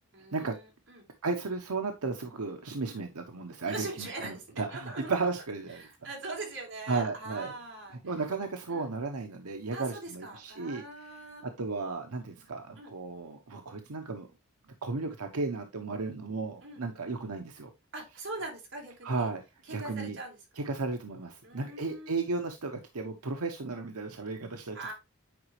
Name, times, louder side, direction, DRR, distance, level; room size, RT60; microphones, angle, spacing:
voice 1, 0.1-0.6 0.9-1.1 2.9-3.0 3.6-4.4 4.7-5.1 5.8-8.0 8.7-8.9 9.7-11.5 12.8-12.9 16.6-16.8 17.9-19.3 19.7-20.4 21.4-22.1 24.7-24.9, right 2 dB, 55° right, 3.6 m, -41 dB
voice 2, 1.2-5.9 6.9-7.5 8.0-14.3 14.8-17.7 19.0-19.4 19.7-20.2 20.6-24.9, right 3 dB, 90° right, 0.9 m, -34 dB
9.4 x 5.0 x 3.1 m
head